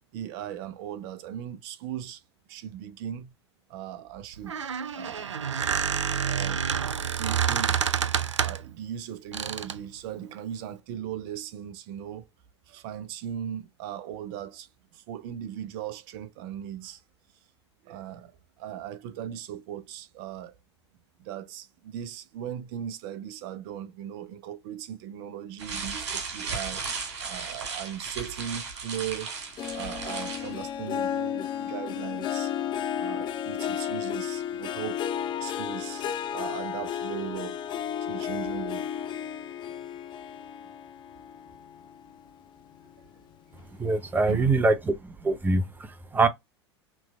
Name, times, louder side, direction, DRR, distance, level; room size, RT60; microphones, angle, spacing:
voice 1, 0.1-2.2 2.5-3.3 3.7-4.6 4.9-5.4 6.3-6.6 7.2-7.9 8.4-12.3 12.7-17.0 17.8-20.6 21.2-29.4 29.7-32.5 33.0-35.1 35.3-36.0 36.3-37.6 38.0-38.9 44.3-44.6, right 10 dB, 50° right, 0.8 m, -38 dB
Squeak, 4.3-8.7 9.3-9.8, right 8 dB, 85° right, 0.4 m, -28 dB
sound 1, 25.6-30.6, right 5 dB, 70° right, 2.0 m, -35 dB
Harp, 29.6-42.3 42.7-43.1 43.6-43.7, left 9 dB, 30° left, 0.6 m, -33 dB
voice 2, 43.8-46.3, right 3 dB, 10° right, 0.6 m, -24 dB
5.8 x 3.2 x 2.2 m
figure-of-eight pair, 90°, 15 cm